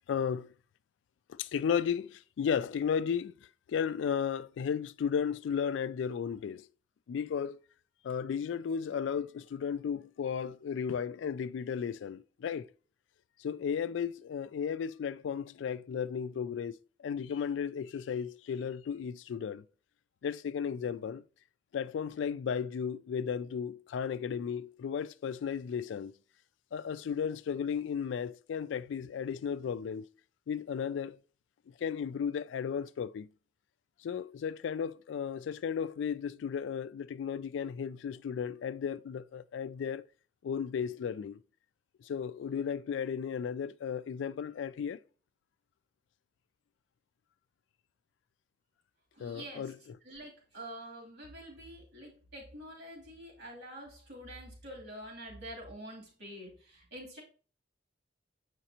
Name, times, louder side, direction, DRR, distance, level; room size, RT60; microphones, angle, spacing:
voice 1, 0.1-0.5 1.3-3.3 3.7-6.7 7.1-7.6 8.0-12.7 13.4-19.6 20.2-21.2 21.7-26.1 26.7-30.1 30.5-31.2 31.8-33.3 34.0-40.0 40.4-41.4 42.0-45.0 49.2-50.0, left 7 dB, 80° left, 0.3 m, -34 dB
voice 2, 49.1-49.7 50.0-57.2, right 1 dB, 60° right, 2.9 m, -47 dB
7.6 x 5.0 x 2.8 m
head